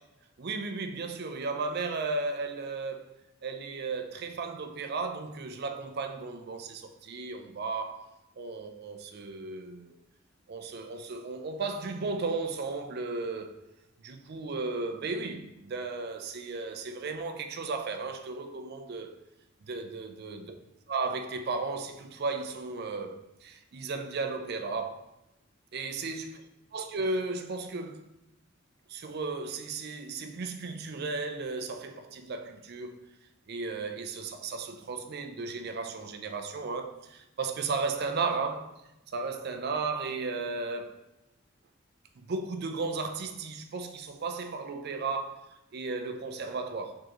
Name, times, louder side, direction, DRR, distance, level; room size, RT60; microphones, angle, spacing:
voice 1, 0.4-10.0 10.5-13.6 14.0-19.2 19.6-20.5 20.9-25.1 25.7-26.4 26.7-28.0 28.9-33.0 33.5-38.7 39.1-41.0 42.2-47.0, right 3 dB, 50° right, 0.4 m, -35 dB
4.8 x 3.6 x 2.9 m
head